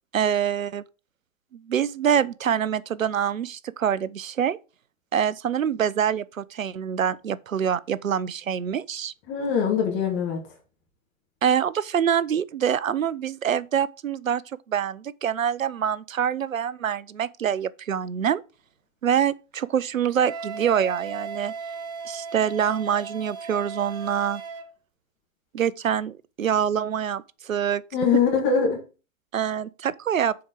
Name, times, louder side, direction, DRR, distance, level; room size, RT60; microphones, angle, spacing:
voice 1, 0.1-0.8 1.5-4.6 5.1-9.1 11.4-14.4 14.7-18.4 19.0-21.5 22.1-24.4 25.5-27.8 29.3-30.3, right 8 dB, 75° right, 0.6 m, -25 dB
voice 2, 9.3-10.4 27.9-28.8, left 6 dB, 30° left, 2.4 m, -22 dB
Wind instrument woodwind instrument, 20.1-24.7, right 5 dB, 10° right, 0.6 m, -36 dB
7.1 x 4.8 x 6.1 m
figure-of-eight pair, 110°, 40 cm